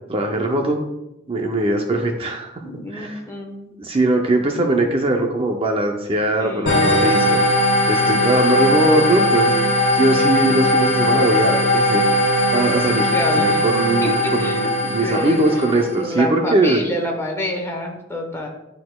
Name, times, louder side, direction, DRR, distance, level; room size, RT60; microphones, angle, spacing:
voice 1, 0.1-0.8 1.3-2.5 2.9-3.2 3.8-7.4 7.9-9.6 9.9-12.1 12.5-16.8, right 2 dB, 30° right, 2 dB, 0.5 m, -20 dB
voice 2, 2.6-3.7 6.4-7.5 12.9-13.6 14.0-18.5, left 1 dB, 15° left, 1 dB, 1.1 m, -28 dB
sound 1, 6.7-16.0, left 1 dB, 65° left, 1.6 m, -19 dB
10.5 x 4.1 x 2.3 m, 0.92 s
head